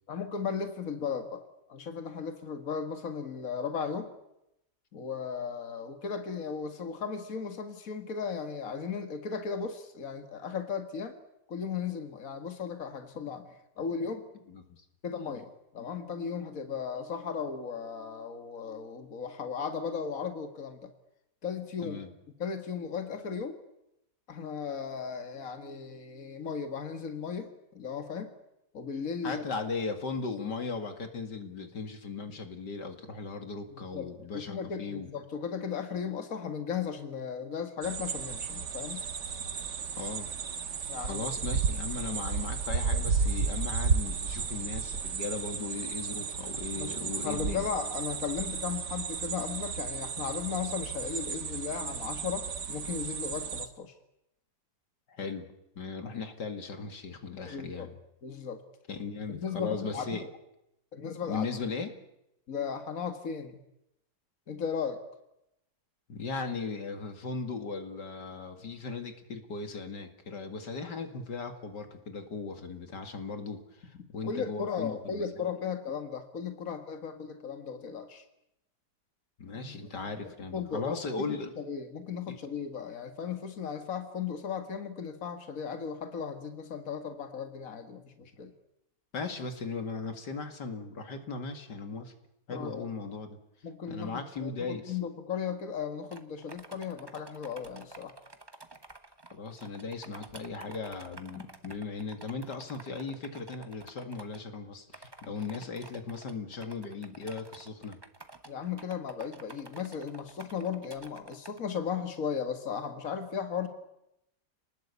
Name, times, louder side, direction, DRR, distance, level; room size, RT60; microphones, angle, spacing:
voice 1, 0.1-4.1 4.9-11.1 11.5-13.5 13.8-14.2 15.0-20.9 21.4-22.0 22.4-23.6 24.3-28.3 28.7-29.4 33.7-34.1 34.3-39.0 40.9-41.3 46.7-53.9 57.5-57.9 58.2-58.6 59.3-60.1 60.9-61.5 62.5-63.6 64.5-65.0 74.2-78.2 79.5-79.8 80.2-80.9 81.6-88.5 92.5-92.9 93.6-98.1 108.5-113.7, left 6 dB, 55° left, 7 dB, 2.3 m, -36 dB
voice 2, 14.5-14.8 21.8-22.1 29.2-35.1 40.0-40.3 41.0-47.7 55.1-55.5 55.8-57.9 58.9-60.2 61.3-61.9 66.1-75.2 79.4-81.5 82.3-82.4 89.1-92.1 92.5-93.4 93.9-95.0 99.3-108.0, left 4 dB, 80° left, 7 dB, 2.8 m, -37 dB
sound 1, 37.8-53.7, right 5 dB, 80° right, 2.1 m, -33 dB
sound 2, 96.1-104.4 104.9-111.6, right 2 dB, 15° right, 1.2 m, -50 dB
28.5 x 19.5 x 8.4 m, 0.84 s
omnidirectional pair, 1.8 m